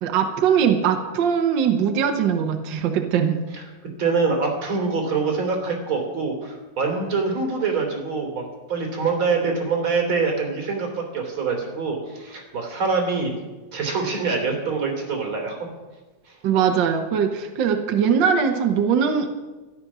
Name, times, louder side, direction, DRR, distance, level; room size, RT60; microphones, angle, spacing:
voice 1, 0.0-3.4 16.4-19.3, right 7 dB, 80° right, 5 dB, 1.0 m, -21 dB
voice 2, 4.0-13.3 13.7-15.6, right 4 dB, 40° right, 1 dB, 3.6 m, -25 dB
13.0 x 11.0 x 6.1 m, 1.2 s
omnidirectional pair, 3.5 m